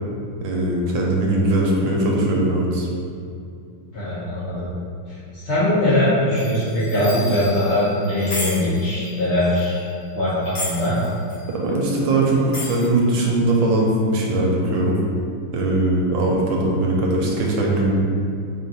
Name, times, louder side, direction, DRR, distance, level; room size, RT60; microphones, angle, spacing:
voice 1, 0.4-2.9 11.5-15.0 15.5-17.9, right 2 dB, 80° right, -2 dB, 1.3 m, -20 dB
voice 2, 3.9-4.7 5.1-9.8 10.1-11.0, left 1 dB, 80° left, -10 dB, 0.6 m, -21 dB
sound 1, 6.4-9.7 10.3-11.4 12.3-12.9, left 1 dB, 45° left, 1.0 m, -33 dB
3.4 x 2.4 x 4.1 m, 2.4 s
omnidirectional pair, 2.2 m